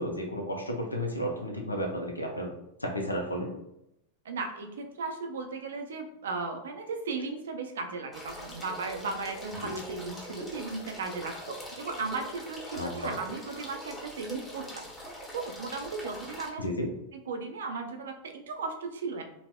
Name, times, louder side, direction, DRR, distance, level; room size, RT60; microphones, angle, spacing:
voice 1, 0.0-2.5 2.8-3.5 12.7-13.2 16.6-16.9, equal, 85° left, 2 dB, 0.5 m, -32 dB
voice 2, 4.2-14.8 15.3-16.8 17.3-19.2, right 4 dB, 65° right, 5 dB, 0.4 m, -36 dB
sound 1, 8.1-16.5, equal, 15° left, 0.8 m, -43 dB
4.0 x 2.0 x 2.2 m, 0.82 s
figure-of-eight pair, 90°, 0 cm